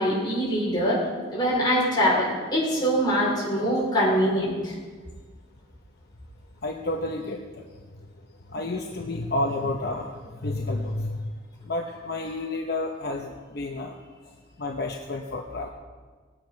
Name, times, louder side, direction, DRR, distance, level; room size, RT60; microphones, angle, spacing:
voice 1, 0.0-4.7, equal, 20° left, -5 dB, 4.5 m, -23 dB
voice 2, 6.6-7.7 8.5-11.3 11.6-14.0 14.6-15.7, left 2 dB, 50° left, 1 dB, 0.9 m, -30 dB
20.0 x 9.0 x 5.2 m, 1.5 s
head